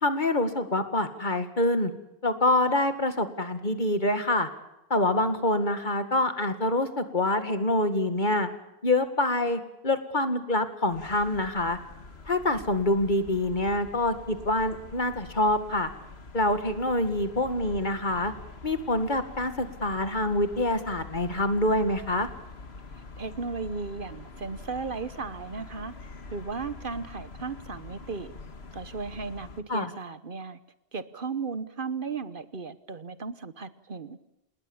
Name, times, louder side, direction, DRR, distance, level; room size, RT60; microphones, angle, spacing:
voice 1, 0.0-1.9 2.2-4.5 4.9-8.5 8.8-11.8 12.3-15.9 16.3-18.3 18.6-22.3 29.7-29.9, left 1 dB, 50° left, 9 dB, 2.2 m, -26 dB
sound 1, 10.9-29.6, left 3 dB, 80° left, 2.1 m, -45 dB
voice 2, 23.2-25.9 26.3-28.3 28.7-30.6 30.9-34.2, right 4 dB, 55° right, 14 dB, 1.2 m, -35 dB
28.5 x 20.0 x 7.2 m, 0.91 s
omnidirectional pair, 1.1 m